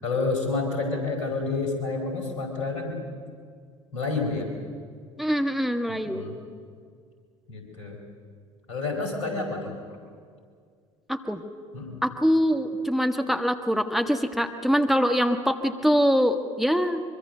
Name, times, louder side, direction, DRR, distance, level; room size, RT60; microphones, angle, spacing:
voice 1, 0.0-3.0 3.9-4.5 5.9-6.4 7.5-8.0 8.7-9.7 11.7-12.0, left 3 dB, 75° left, 4 dB, 4.8 m, -29 dB
voice 2, 5.2-6.2 11.1-11.4 12.0-17.0, equal, ahead, 6 dB, 1.5 m, -24 dB
24.5 x 23.5 x 6.7 m, 2.1 s
figure-of-eight pair, 65°, 16 cm